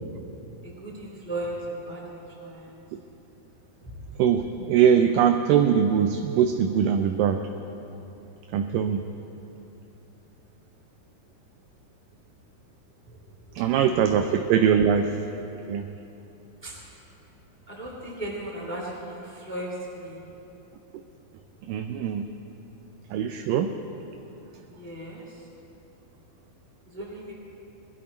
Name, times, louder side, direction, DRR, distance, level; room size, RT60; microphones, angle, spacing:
voice 1, 0.6-2.8 3.8-4.2 13.1-13.2 13.6-14.3 16.6-16.8 17.7-20.2 24.6-25.5 26.9-27.3, right 1 dB, 5° left, -4 dB, 1.9 m, -37 dB
voice 2, 4.2-7.4 8.5-9.1 13.6-15.2 15.7-15.9 21.6-22.3 23.1-23.8, right 8 dB, 85° right, 7 dB, 2.0 m, -22 dB
20.5 x 12.5 x 4.3 m, 3.0 s
omnidirectional pair, 4.4 m